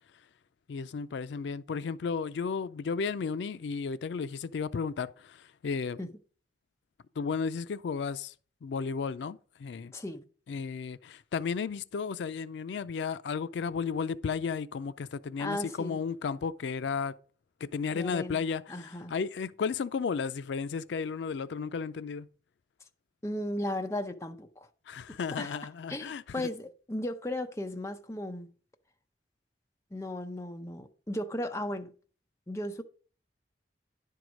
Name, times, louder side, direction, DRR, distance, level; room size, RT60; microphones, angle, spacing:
voice 1, 0.7-6.0 7.2-8.3 8.6-9.9 10.5-17.1 17.6-22.3 24.9-26.5, left 5 dB, 85° left, 0.4 m, -34 dB
voice 2, 9.9-10.2 15.4-16.0 17.9-18.4 18.7-19.1 23.2-24.7 25.4-25.6 25.9-28.5 29.9-31.9 32.5-32.8, left 1 dB, 15° left, 0.6 m, -36 dB
10.5 x 4.7 x 5.1 m
head